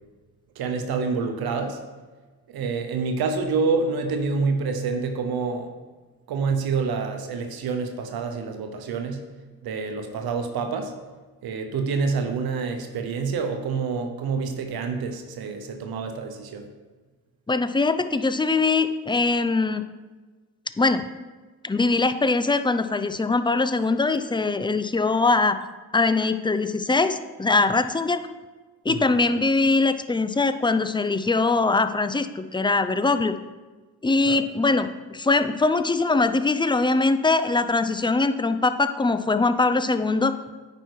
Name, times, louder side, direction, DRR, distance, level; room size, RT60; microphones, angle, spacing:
voice 1, 0.6-1.8 2.5-5.8 6.3-9.2 9.6-10.9 11.4-16.7 28.9-29.1 34.3-34.4, right 4 dB, 90° right, 5 dB, 0.9 m, -27 dB
voice 2, 17.5-19.8 20.8-21.0 21.6-25.6 25.9-28.2 28.8-33.4 34.0-40.3, left 3 dB, 15° left, 10 dB, 0.5 m, -22 dB
9.1 x 5.3 x 4.7 m, 1.3 s
cardioid pair, 60°, 36 cm